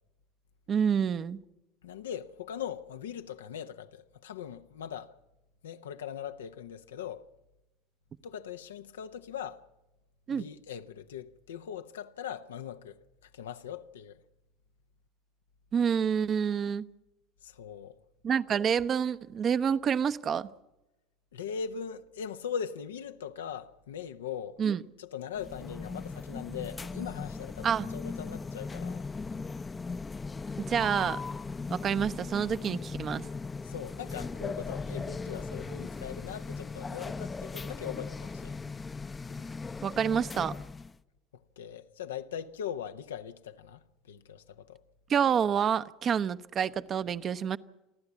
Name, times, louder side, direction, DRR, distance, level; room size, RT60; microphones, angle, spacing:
voice 1, 0.7-1.4 10.3-10.5 15.7-16.8 18.2-20.5 24.6-24.8 27.6-27.9 30.6-31.2 31.7-33.2 39.8-40.6 45.1-47.6, right 7 dB, 40° right, 0.8 m, -28 dB
voice 2, 1.8-5.1 5.6-7.2 8.2-9.6 10.3-14.2 17.4-18.0 21.3-24.6 25.0-29.1 33.6-38.5 41.6-44.8, left 8 dB, 80° left, 0.8 m, -40 dB
sound 1, 25.3-41.0, left 4 dB, 20° left, 0.6 m, -38 dB
29.0 x 11.5 x 8.3 m
hypercardioid pair, 75°, 0 cm